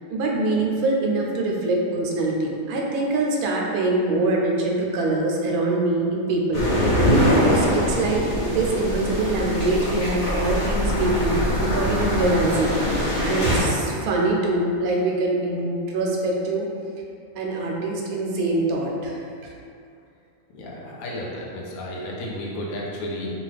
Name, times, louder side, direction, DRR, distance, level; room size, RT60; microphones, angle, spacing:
voice 1, 0.1-16.7 17.3-19.5, right 2 dB, 85° right, -1 dB, 1.0 m, -24 dB
sound 1, 6.5-13.6, equal, 55° left, 1.2 m, -22 dB
voice 2, 20.5-23.3, left 1 dB, 75° left, -3 dB, 1.0 m, -32 dB
2.9 x 2.4 x 3.2 m, 2.4 s
omnidirectional pair, 1.5 m